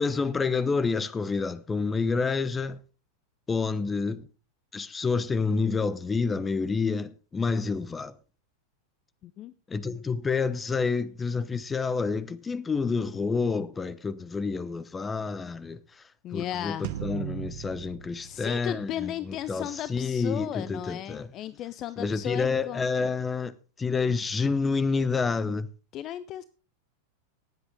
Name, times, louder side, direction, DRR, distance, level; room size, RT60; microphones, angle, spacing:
voice 1, 0.0-2.8 3.5-4.2 4.7-8.1 9.7-16.0 16.3-21.3 22.0-25.7, left 4 dB, 15° left, 0.8 m, -28 dB
voice 2, 9.2-9.5 16.2-16.9 18.2-23.1 25.9-26.4, left 12 dB, 35° left, 0.5 m, -35 dB
sound 1, 16.8-19.4, right 11 dB, 50° right, 1.0 m, -38 dB
18.5 x 8.0 x 3.4 m
figure-of-eight pair, 90°, 0 cm